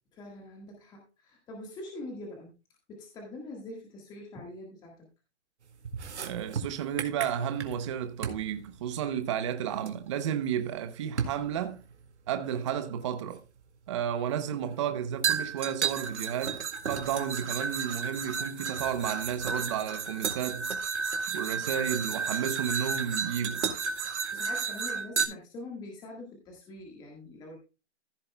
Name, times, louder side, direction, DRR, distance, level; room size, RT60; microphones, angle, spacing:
voice 1, 0.1-2.5 2.9-5.1 21.3-21.8 24.0-27.6, left 2 dB, 10° left, 1.6 m, -44 dB
sound 1, 5.8-7.9 8.2-8.5 9.9-10.0 11.2-11.4 12.7-12.8 15.2-25.2, right 6 dB, 75° right, 2.1 m, -32 dB
voice 2, 6.2-11.8 12.3-13.4 13.9-20.7 21.3-23.7, right 9 dB, 25° right, 0.8 m, -32 dB
15.0 x 7.7 x 2.2 m
hypercardioid pair, 160°, 35 cm